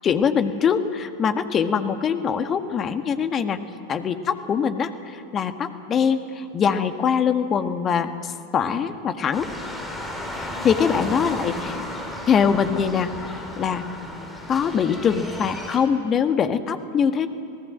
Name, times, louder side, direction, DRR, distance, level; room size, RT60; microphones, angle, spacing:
voice 1, 0.0-3.6 3.9-9.5 10.3-11.8 12.3-13.1 13.6-14.0 14.5-17.3, left 7 dB, 25° left, 9 dB, 1.6 m, -23 dB
sound 1, 9.3-15.8, left 1 dB, 10° left, 4.5 m, -33 dB
28.5 x 18.5 x 7.5 m, 2.4 s
figure-of-eight pair, 90°, 0 cm